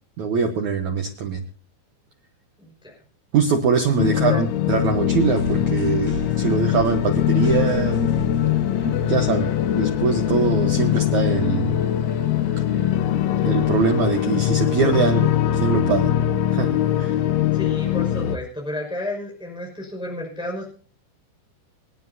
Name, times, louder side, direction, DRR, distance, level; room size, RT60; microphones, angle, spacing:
voice 1, 0.2-1.4 3.3-8.1 8.8-11.8 13.4-16.1 16.5-16.7 17.0-17.1, right 5 dB, 85° right, 4 dB, 1.6 m, -23 dB
voice 2, 2.6-2.9 4.1-4.4 17.5-20.7, left 1 dB, ahead, -1 dB, 5.0 m, -32 dB
sound 1, 4.0-18.4, left 11 dB, 80° left, 3.0 m, -22 dB
sound 2, 5.2-18.0, right 3 dB, 50° left, 8.9 m, -40 dB
27.5 x 9.6 x 2.8 m, 0.41 s
omnidirectional pair, 5.4 m